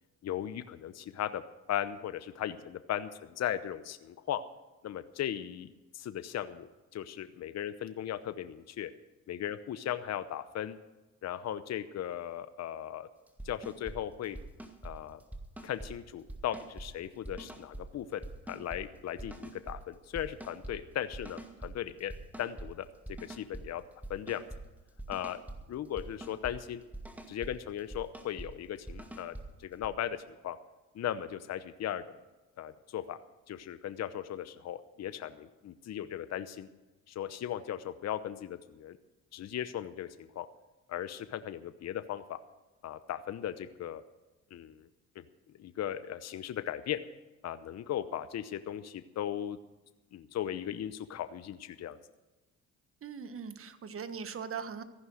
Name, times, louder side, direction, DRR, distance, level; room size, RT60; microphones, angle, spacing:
voice 1, 0.2-1.4 1.7-4.4 4.8-5.7 5.9-6.7 6.9-8.9 9.3-10.8 11.2-13.1 13.4-14.4 14.8-15.2 15.6-18.2 18.5-22.1 22.4-22.9 23.2-23.8 24.1-24.4 25.1-25.4 25.7-26.8 27.3-29.3 29.6-30.6 30.9-32.0 32.6-33.2 33.5-36.7 37.1-39.0 39.3-40.5 40.9-42.4 42.8-44.0 44.5-44.9 45.2-45.3 45.6-47.0 47.4-49.6 50.1-52.0, left 10 dB, 60° left, 12 dB, 0.9 m, -37 dB
sound 1, 13.3-14.0 14.2-14.9 15.3-15.9 16.3-16.9 17.2-17.8 18.2-18.8 19.2-19.8 20.1-20.7 21.1-21.7 22.0-22.7 23.0-23.6 24.0-24.6 25.0-25.6 26.0-26.5 26.9-27.5 27.8-28.5 28.9-29.5 29.8-29.9, right 1 dB, 5° right, 2.2 m, -44 dB
voice 2, 53.0-54.8, right 6 dB, 45° right, 10 dB, 1.5 m, -40 dB
15.0 x 11.0 x 6.4 m, 1.1 s
cardioid pair, 90°, 30 cm